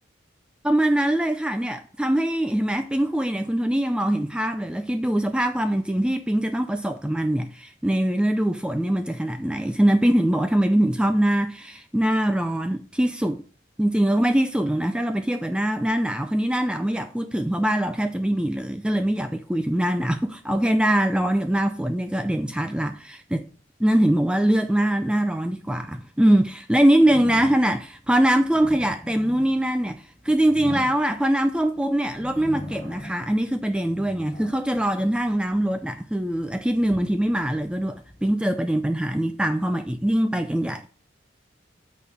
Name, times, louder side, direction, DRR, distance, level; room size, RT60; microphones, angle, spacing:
voice 1, 0.6-13.4 13.8-23.5 23.8-40.9, right 1 dB, 5° right, 0.4 m, -23 dB
sound 1, 27.0-27.9 28.4-31.6 32.1-33.4 33.7-35.6 36.2-38.3, left 1 dB, 15° left, 3.2 m, -39 dB
8.2 x 4.3 x 5.1 m
head